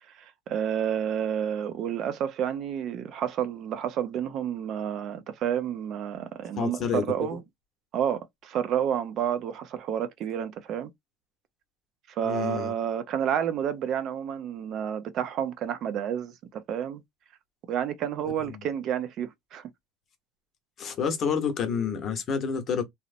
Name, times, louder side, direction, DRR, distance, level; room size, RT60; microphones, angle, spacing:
voice 1, 0.1-7.4 7.9-10.9 12.1-17.0 17.7-19.6, right 9 dB, 45° right, 0.5 m, -30 dB
voice 2, 6.6-7.4 12.2-12.7 18.4-18.7 20.8-22.8, left 6 dB, 35° left, 0.8 m, -29 dB
2.8 x 2.0 x 2.4 m
cardioid pair, 135°, 0 cm